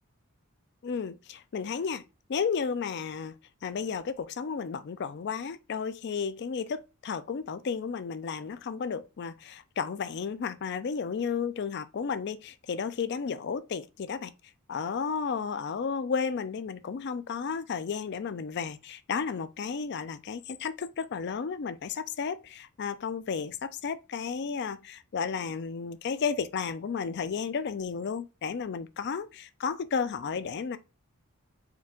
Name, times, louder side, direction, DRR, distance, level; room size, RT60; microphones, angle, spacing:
voice 1, 0.8-2.0 2.3-3.3 3.6-14.3 14.7-30.8, left 6 dB, 55° left, 0.4 m, -33 dB
4.5 x 2.4 x 3.6 m
head